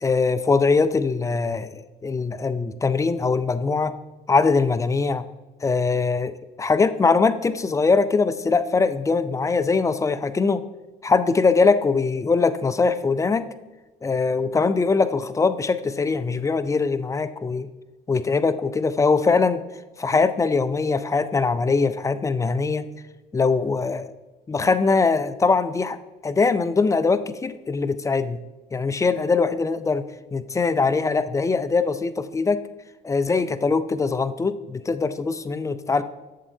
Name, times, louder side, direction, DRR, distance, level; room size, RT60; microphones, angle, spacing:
voice 1, 0.0-3.9 4.3-5.3 5.6-10.6 11.0-13.4 14.0-17.7 18.1-19.6 20.0-22.9 23.3-24.1 24.5-26.0 26.2-28.4 28.7-30.1 30.3-32.6 33.0-36.0, left 4 dB, 20° left, 12 dB, 0.4 m, -22 dB
7.5 x 7.3 x 2.7 m, 1.1 s
cardioid pair, 95°, 17 cm